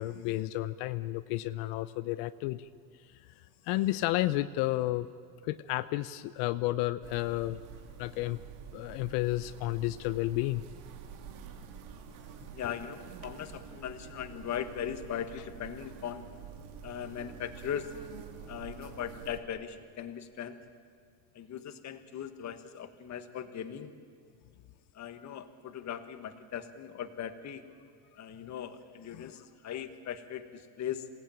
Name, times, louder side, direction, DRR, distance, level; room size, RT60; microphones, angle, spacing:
voice 1, 0.0-2.7 3.6-5.1 5.4-7.6 8.0-8.4 8.7-10.6 29.1-29.3, left 17 dB, 80° left, 13 dB, 0.8 m, -31 dB
sound 1, 7.0-19.4, right 7 dB, 70° right, 2.2 m, -48 dB
voice 2, 12.5-16.3 16.8-18.0 18.5-20.6 21.3-23.9 24.9-27.6 28.1-31.1, left 9 dB, 35° left, 9 dB, 1.4 m, -39 dB
27.0 x 18.0 x 9.0 m, 2.2 s
cardioid pair, 160°, 50 cm